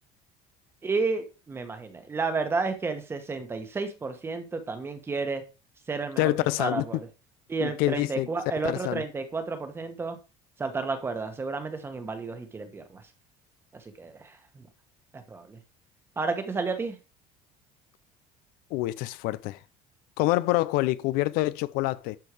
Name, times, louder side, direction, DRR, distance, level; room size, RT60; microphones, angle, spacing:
voice 1, 0.8-5.4 5.9-6.3 6.6-7.1 7.5-10.2 10.6-13.0 13.7-14.6 15.1-15.6 16.2-17.0, right 4 dB, 15° right, 1.3 m, -31 dB
voice 2, 6.2-6.9 7.6-8.3 8.6-9.0 18.7-19.6 20.2-22.2, left 18 dB, 70° left, 0.5 m, -26 dB
12.0 x 4.6 x 4.8 m
cardioid pair, 175°, 16 cm